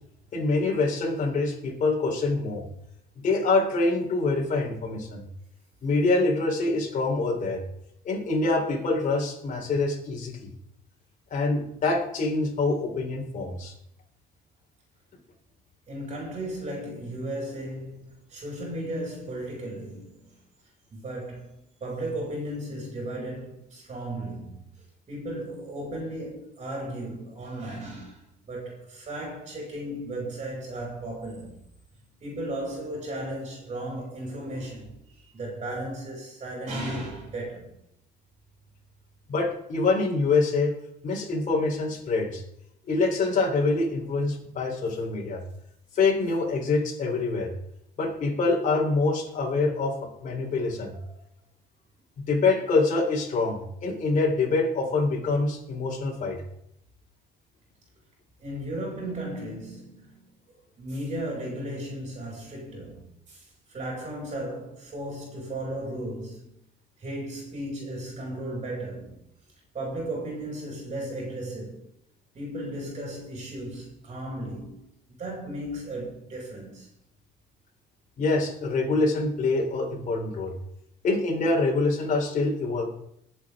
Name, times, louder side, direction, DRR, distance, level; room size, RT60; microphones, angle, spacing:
voice 1, 0.3-2.6 3.2-5.2 5.8-7.6 8.0-10.5 11.3-13.7 39.3-40.7 41.0-42.4 42.9-45.4 45.9-47.5 48.0-50.0 50.2-51.0 52.2-56.4 78.2-80.5 81.0-82.8, left 3 dB, 50° left, 3.6 m, -25 dB
voice 2, 15.9-20.4 20.9-31.6 32.2-37.7 50.9-51.2 58.4-60.3 60.8-66.5 67.0-69.2 69.7-71.8 72.3-74.9 75.2-76.9, right 1 dB, 40° right, 5.4 m, -35 dB
22.0 x 7.7 x 3.6 m
cardioid pair, 110°, 17 cm